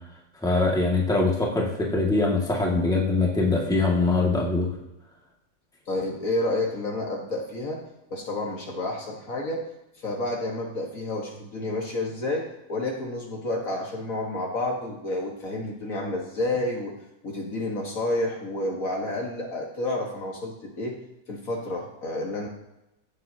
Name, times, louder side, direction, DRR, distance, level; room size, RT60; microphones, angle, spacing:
voice 1, 0.4-4.7, left 3 dB, ahead, -2 dB, 1.7 m, -23 dB
voice 2, 5.9-7.8 8.1-9.6 10.0-16.9 17.2-21.0 21.3-22.5, left 2 dB, 50° left, 0 dB, 1.7 m, -30 dB
15.5 x 7.6 x 2.8 m, 0.90 s
omnidirectional pair, 1.9 m